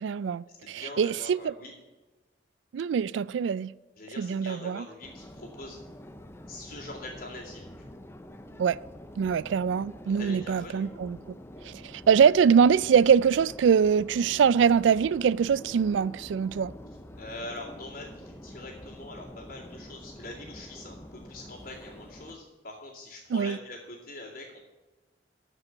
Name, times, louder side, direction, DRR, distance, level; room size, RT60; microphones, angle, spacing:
voice 1, 0.0-1.5 2.7-3.7 4.2-4.9 8.6-8.8 9.2-11.4 11.6-16.7 23.3-23.6, right 7 dB, 90° right, 0.3 m, -23 dB
voice 2, 0.6-1.7 4.0-5.8 6.5-7.8 10.2-11.0 17.2-24.6, left 2 dB, 55° left, 2.4 m, -43 dB
Subway metro underground, 5.0-22.3, left 1 dB, 15° left, 0.6 m, -46 dB
13.5 x 5.3 x 7.2 m
head